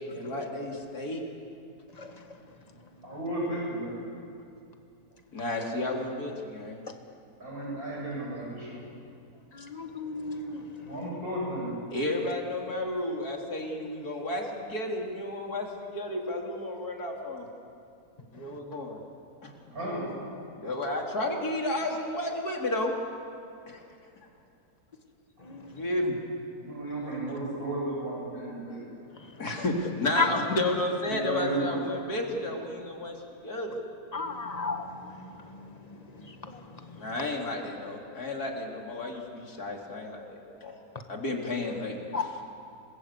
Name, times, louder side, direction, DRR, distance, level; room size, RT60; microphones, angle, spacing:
voice 1, 0.1-1.2 5.3-6.8 11.9-15.7 15.9-17.5 18.3-19.0 19.4-19.5 20.6-22.9 23.7-23.8 25.7-26.2 29.4-33.2 33.4-33.7 37.0-40.7 41.1-42.1, left 1 dB, 80° left, 0 dB, 3.7 m, -32 dB
voice 2, 3.0-4.0 5.9-6.1 7.4-8.9 10.8-11.8 19.7-20.0 23.6-23.7 26.6-28.8 31.1-31.8, right 1 dB, 70° right, -3 dB, 7.7 m, -34 dB
voice 3, 9.5-10.6 25.5-25.7 30.2-30.3 34.1-34.9 36.5-36.6 42.1-42.2, left 4 dB, 25° left, 5 dB, 1.8 m, -31 dB
28.0 x 20.5 x 8.4 m, 2.6 s
omnidirectional pair, 1.6 m